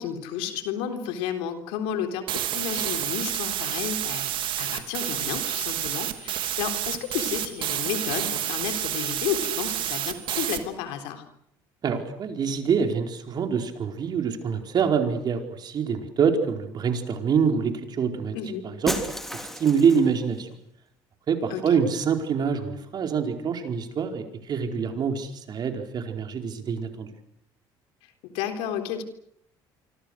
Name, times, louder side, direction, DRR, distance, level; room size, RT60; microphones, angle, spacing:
voice 1, 0.0-4.3 4.6-11.2 18.3-18.6 21.5-21.6 28.2-29.0, left 8 dB, 85° left, 7 dB, 3.7 m, -32 dB
sound 1, 2.3-10.6, right 12 dB, 65° right, 3.0 m, -29 dB
voice 2, 11.8-19.0 19.3-20.5 21.3-27.1, right 6 dB, 50° right, 5 dB, 4.7 m, -25 dB
Shatter, 18.9-20.2, equal, 5° left, 3.5 m, -33 dB
27.0 x 25.0 x 6.6 m, 0.72 s
cardioid pair, 100°, 9 cm